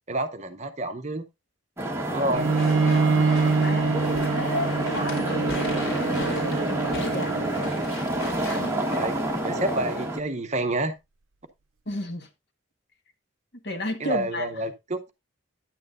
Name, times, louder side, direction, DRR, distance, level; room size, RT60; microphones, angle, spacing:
voice 1, 0.1-1.2 2.1-2.5 8.9-11.0 14.0-15.1, right 1 dB, 35° right, 0.7 m, -29 dB
sound 1, 1.8-10.2, right 1 dB, 15° right, 1.1 m, -28 dB
Bowed string instrument, 2.3-8.0, right 4 dB, 80° right, 0.5 m, -26 dB
Walk footsteps / Chatter / Squeak, 2.4-10.0, left 1 dB, 85° left, 3.7 m, -36 dB
voice 2, 2.8-6.5 6.8-7.5 8.5-8.8 11.9-12.3 13.6-14.5, left 1 dB, 55° left, 1.4 m, -33 dB
9.7 x 8.7 x 2.5 m
head